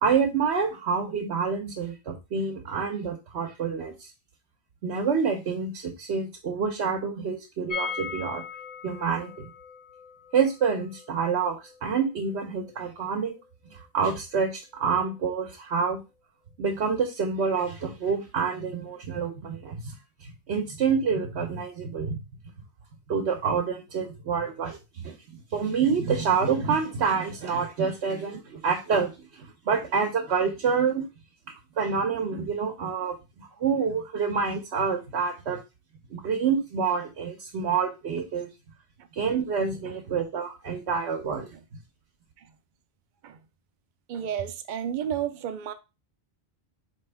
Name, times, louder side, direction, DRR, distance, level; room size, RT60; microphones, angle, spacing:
voice 1, 0.0-4.1 4.8-8.4 8.8-9.5 10.3-13.4 13.7-16.0 16.6-22.2 23.1-25.2 25.5-31.0 31.8-35.6 36.1-38.5 39.1-41.5, right 6 dB, 85° right, 1.0 m, -27 dB
sound 1, 7.7-13.5 13.7-13.8 14.1-14.2, left 6 dB, 45° left, 0.6 m, -40 dB
voice 2, 39.8-40.2 43.2-43.4 44.1-45.7, right 9 dB, 55° right, 0.6 m, -32 dB
4.3 x 3.1 x 3.3 m
omnidirectional pair, 1.1 m